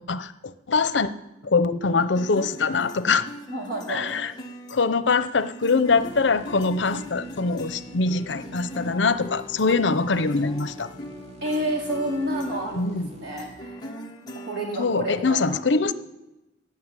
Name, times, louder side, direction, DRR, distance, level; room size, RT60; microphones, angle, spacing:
voice 1, 0.1-1.1 1.4-3.3 3.9-4.3 4.7-10.9 12.7-13.1 14.8-15.9, left 4 dB, 80° left, 13 dB, 0.8 m, -23 dB
sound 1, 2.2-15.4, equal, 20° left, 1.3 m, -40 dB
voice 2, 3.5-4.1 11.4-13.9 14.3-15.6, right 1 dB, 65° right, -2 dB, 4.3 m, -30 dB
sound 2, 5.9-13.6, right 2 dB, 35° right, 2.3 m, -45 dB
17.0 x 6.6 x 9.7 m, 1.0 s
head